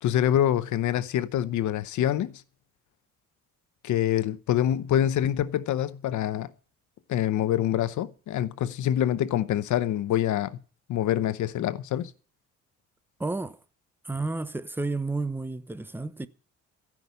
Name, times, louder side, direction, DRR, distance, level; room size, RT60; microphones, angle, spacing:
voice 1, 0.0-2.4 3.8-6.5 7.1-10.6 10.9-12.1, left 11 dB, 75° left, 0.8 m, -26 dB
voice 2, 13.2-13.6 14.0-16.3, right 3 dB, 5° right, 0.8 m, -31 dB
15.0 x 6.0 x 9.5 m
cardioid pair, 90°, 30 cm